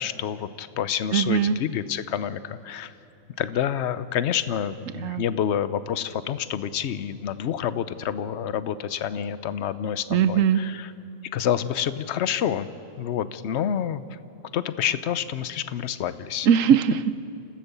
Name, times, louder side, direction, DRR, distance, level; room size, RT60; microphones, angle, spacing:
voice 1, 0.0-2.9 3.4-10.9 11.3-12.7 13.0-14.2 14.5-16.5, left 9 dB, 60° left, 14 dB, 0.9 m, -28 dB
voice 2, 1.1-1.6 5.0-5.2 10.1-10.6 16.5-17.1, right 8 dB, 70° right, 14 dB, 1.0 m, -20 dB
28.5 x 15.0 x 6.8 m, 2.8 s
omnidirectional pair, 1.5 m